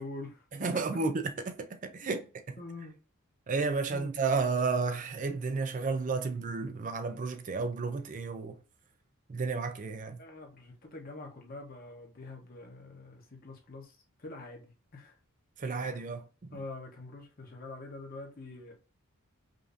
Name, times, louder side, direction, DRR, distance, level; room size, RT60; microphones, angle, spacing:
voice 1, 0.0-0.4 2.0-2.3 2.6-3.0 3.9-4.1 6.4-6.5 10.2-15.1 15.7-16.1 16.5-18.7, left 2 dB, 40° left, 1.0 m, -45 dB
voice 2, 0.6-2.2 3.5-8.6 9.3-10.2 15.6-16.2, right 4 dB, 35° right, 0.4 m, -32 dB
5.0 x 2.6 x 2.5 m
head